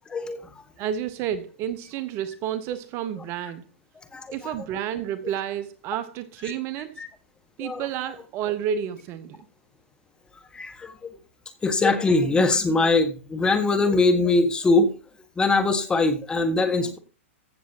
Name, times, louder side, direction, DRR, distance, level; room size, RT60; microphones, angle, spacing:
voice 1, 0.8-3.6 4.3-7.0 7.6-9.5, right 9 dB, 35° right, 0.7 m, -30 dB
voice 2, 4.1-4.5 7.0-7.1 7.6-7.8 10.5-10.9 11.6-14.9 15.4-17.0, left 3 dB, 15° left, 1.4 m, -22 dB
15.5 x 6.9 x 2.8 m
hypercardioid pair, 120°, 7 cm